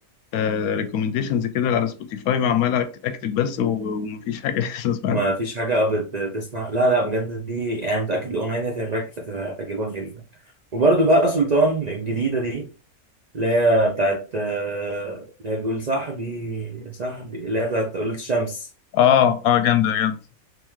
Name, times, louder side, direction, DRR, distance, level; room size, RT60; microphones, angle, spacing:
voice 1, 0.3-5.2 18.9-20.2, left 9 dB, 75° left, 1.0 m, -22 dB
voice 2, 5.1-10.1 10.7-12.7 13.3-18.7, right 1 dB, 80° right, 0.3 m, -23 dB
3.5 x 3.3 x 3.0 m
omnidirectional pair, 1.6 m